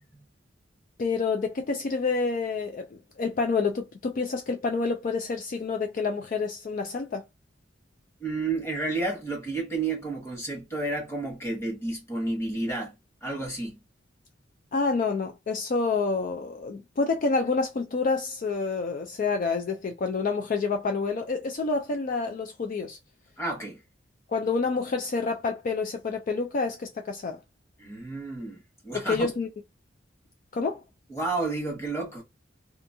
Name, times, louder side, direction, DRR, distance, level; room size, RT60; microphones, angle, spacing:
voice 1, 1.0-7.2 14.7-23.0 24.3-27.4 28.9-29.5 30.5-30.8, left 4 dB, 45° left, 0.4 m, -28 dB
voice 2, 8.2-12.9 13.2-13.8 23.4-23.8 27.8-29.3 31.1-32.2, right 2 dB, 15° left, 1.1 m, -31 dB
2.6 x 2.4 x 2.6 m
head